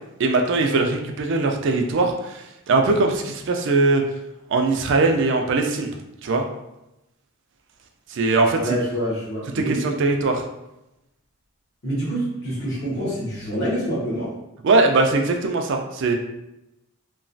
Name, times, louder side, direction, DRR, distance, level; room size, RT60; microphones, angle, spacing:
voice 1, 0.2-4.0 4.5-5.9 6.2-6.4 8.1-8.8 9.6-10.4 14.6-16.1, right 3 dB, 55° right, 4 dB, 0.3 m, -20 dB
voice 2, 8.5-9.8 11.8-14.3, equal, 55° left, -8 dB, 1.0 m, -26 dB
3.0 x 2.3 x 2.5 m, 0.91 s
head